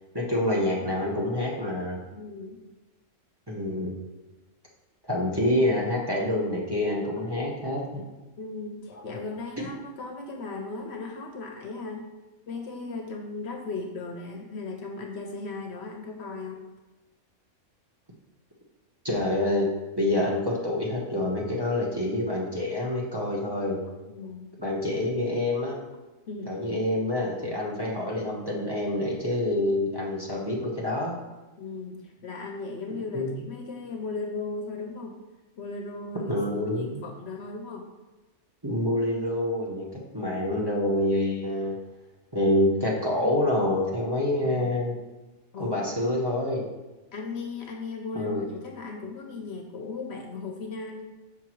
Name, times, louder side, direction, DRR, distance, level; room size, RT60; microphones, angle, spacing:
voice 1, 0.1-2.0 3.5-3.9 5.0-8.0 19.0-19.7 20.0-23.8 24.6-25.8 26.5-31.2 33.1-33.3 36.3-36.9 38.6-41.7 42.3-44.9 45.6-46.6 48.1-48.4, left 1 dB, 20° right, -4 dB, 0.9 m, -27 dB
voice 2, 2.1-2.6 8.4-12.1 12.5-16.6 24.1-24.5 26.3-26.6 31.6-35.2 35.6-37.9 44.4-44.7 45.5-45.8 47.1-51.0, left 3 dB, 65° left, 3 dB, 0.9 m, -37 dB
5.9 x 5.7 x 3.0 m, 1.2 s
omnidirectional pair, 1.3 m